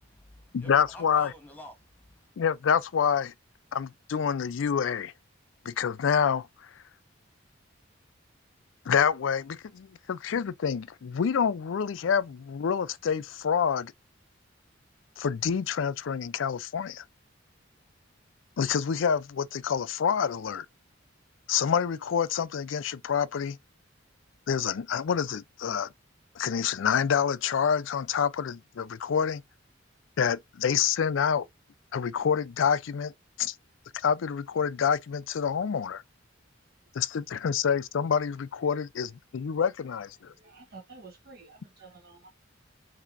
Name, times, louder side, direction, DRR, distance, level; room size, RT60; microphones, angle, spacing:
voice 1, 0.0-2.3, equal, 10° left, 1.3 m, -49 dB
voice 2, 0.5-1.3 2.4-3.3 3.7-5.1 5.6-6.7 8.9-13.9 15.2-17.0 18.6-20.7 21.5-23.6 24.5-25.9 26.4-29.4 30.2-31.5 31.9-33.1 33.4-33.6 33.9-36.0 36.9-40.3, left 7 dB, 75° left, 0.4 m, -27 dB
voice 3, 40.3-42.3, right 4 dB, 50° right, 1.0 m, -50 dB
5.8 x 2.8 x 2.5 m
head